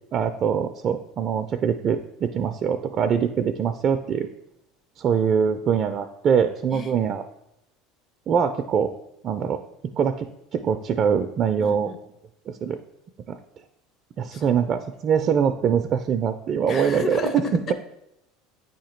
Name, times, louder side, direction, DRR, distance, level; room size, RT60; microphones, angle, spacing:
voice 1, 0.1-4.3 5.0-7.2 8.3-8.9 9.2-9.6 10.0-10.3 10.5-11.9 12.5-12.8 13.3-13.4 14.2-17.2 17.5-17.7, right 7 dB, 45° right, 7 dB, 0.4 m, -23 dB
voice 2, 11.6-12.0 14.3-14.5 16.7-17.7, left 3 dB, 40° left, 7 dB, 0.8 m, -33 dB
8.5 x 2.8 x 4.4 m, 0.84 s
supercardioid pair, 100°, 0 cm